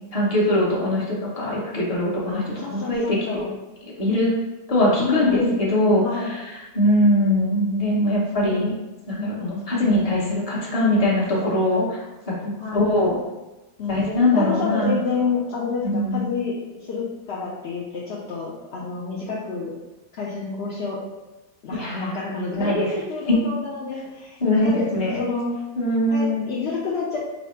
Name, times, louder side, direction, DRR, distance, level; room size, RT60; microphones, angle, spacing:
voice 1, 0.1-3.4 3.8-4.3 4.7-8.7 9.1-13.2 13.9-15.0 15.8-16.3 21.7-22.2 22.6-22.9 23.3-23.4 24.4-25.2 25.8-26.5, left 1 dB, 30° left, -5 dB, 0.8 m, -22 dB
voice 2, 2.3-3.5 5.0-5.6 6.0-6.3 9.4-9.9 12.6-13.0 13.8-19.7 20.2-21.0 21.6-24.9 25.2-25.5 26.1-27.2, left 4 dB, 70° left, -6 dB, 0.6 m, -29 dB
4.1 x 2.0 x 4.3 m, 1.1 s
omnidirectional pair, 1.7 m